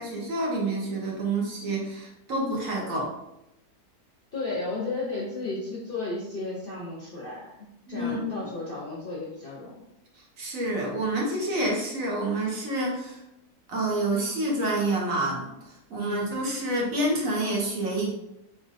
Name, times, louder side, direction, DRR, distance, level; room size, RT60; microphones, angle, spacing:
voice 1, 0.0-3.1 7.9-8.5 10.4-13.2 13.7-18.1, right 1 dB, 60° right, -3 dB, 1.3 m, -28 dB
voice 2, 4.3-7.5 7.9-9.8 16.0-16.3, left 3 dB, 50° left, -5 dB, 0.6 m, -33 dB
4.0 x 3.7 x 2.5 m, 0.88 s
omnidirectional pair, 1.7 m